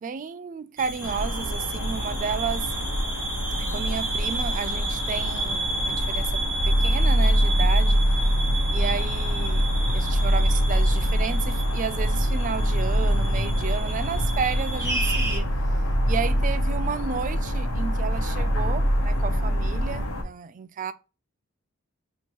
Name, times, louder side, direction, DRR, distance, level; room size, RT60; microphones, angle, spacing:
voice 1, 0.0-2.7 3.6-8.0 8.7-9.7 9.9-15.5 16.1-20.9, right 6 dB, 35° right, 0.3 m, -32 dB
sound 1, 0.8-15.4, right 2 dB, 10° right, 1.0 m, -32 dB
sound 2, 1.0-20.2, equal, 80° left, 1.1 m, -30 dB
sound 3, 6.6-20.0, equal, 65° left, 1.6 m, -24 dB
4.3 x 2.9 x 2.9 m
head